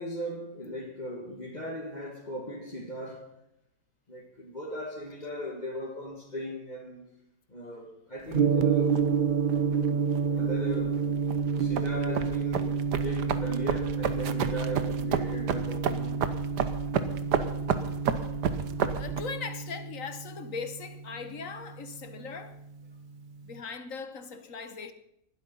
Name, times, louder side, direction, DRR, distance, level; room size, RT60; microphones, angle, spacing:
voice 1, 0.0-3.3 4.1-7.1 7.5-9.0 9.8-10.1 10.3-11.3 11.5-16.2, equal, 25° left, 2.2 m, -38 dB
Gong, 8.3-22.5, right 6 dB, 35° right, 0.9 m, -29 dB
sound 1, 8.3-19.2, right 7 dB, 90° right, 1.6 m, -32 dB
voice 2, 18.9-22.6 23.4-24.9, left 5 dB, 55° left, 1.6 m, -39 dB
20.0 x 12.5 x 5.6 m
omnidirectional pair, 1.7 m